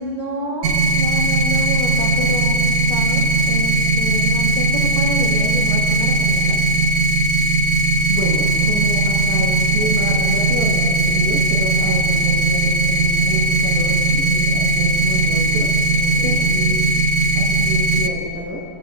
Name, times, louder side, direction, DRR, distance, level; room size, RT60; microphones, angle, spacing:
voice 1, 0.0-6.6 16.2-16.5, left 1 dB, 25° left, -3 dB, 1.5 m, -28 dB
sound 1, 0.6-18.1, right 2 dB, 70° right, 1.0 m, -18 dB
voice 2, 7.8-16.8 17.3-18.6, equal, 10° right, -3 dB, 1.0 m, -29 dB
20.5 x 10.0 x 2.5 m, 2.7 s
omnidirectional pair, 1.5 m